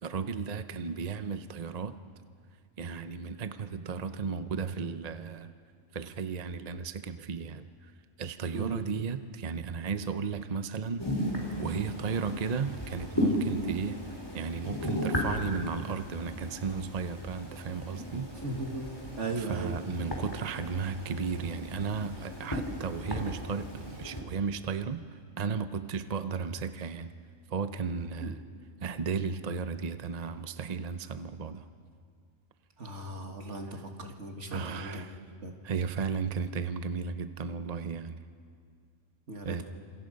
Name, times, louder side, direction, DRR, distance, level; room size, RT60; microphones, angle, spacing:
voice 1, 0.0-2.0 2.8-5.5 5.9-7.9 8.2-11.0 11.6-18.3 19.3-25.0 25.4-27.1 27.5-28.4 28.8-31.6 34.5-35.2 35.6-38.2 39.4-39.6, right 5 dB, 40° right, 10 dB, 0.7 m, -34 dB
voice 2, 8.5-8.8 18.4-18.9 19.2-19.8 28.2-28.3 32.8-35.5 39.3-39.6, right 3 dB, 65° right, 3 dB, 2.4 m, -37 dB
sound 1, 11.0-24.2, equal, 15° left, 3.8 m, -35 dB
29.5 x 27.0 x 5.3 m, 2.1 s
omnidirectional pair, 1.3 m